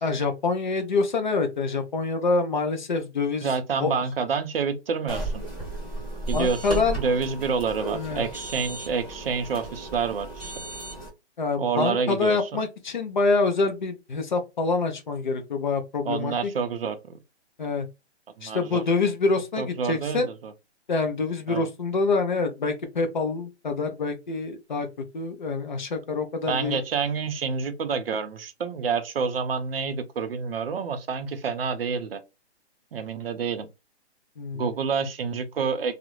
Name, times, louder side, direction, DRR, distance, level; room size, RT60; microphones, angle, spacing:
voice 1, 0.0-3.5 3.8-3.9 6.3-7.0 7.9-8.2 11.4-16.5 17.6-17.9 18.4-20.3 20.9-24.9 25.1-26.8 34.4-34.7, left 3 dB, 45° left, 0.5 m, -26 dB
voice 2, 3.4-5.4 6.3-10.5 11.6-12.6 16.0-17.0 18.4-18.8 19.6-20.5 21.5-21.6 26.5-32.2 32.9-33.7 34.5-36.0, right 5 dB, 55° right, 0.5 m, -28 dB
sound 1, 5.1-11.1, right 2 dB, ahead, 0.7 m, -34 dB
2.4 x 2.0 x 2.9 m
hypercardioid pair, 165°, 35 cm